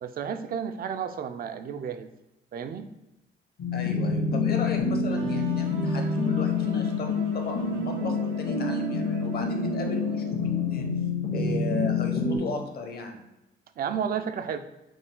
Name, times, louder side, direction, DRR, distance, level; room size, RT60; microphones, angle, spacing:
voice 1, 0.0-2.1 2.5-2.9 13.8-14.6, right 7 dB, 50° right, 9 dB, 0.4 m, -32 dB
sound 1, 3.6-12.4, left 4 dB, 75° left, 1.5 m, -27 dB
voice 2, 3.7-10.9 11.3-13.2, left 3 dB, 50° left, 4 dB, 0.9 m, -36 dB
sound 2, 5.1-10.9, right 4 dB, 75° right, 0.8 m, -44 dB
5.8 x 2.3 x 3.7 m, 0.96 s
cardioid pair, 90°, 20 cm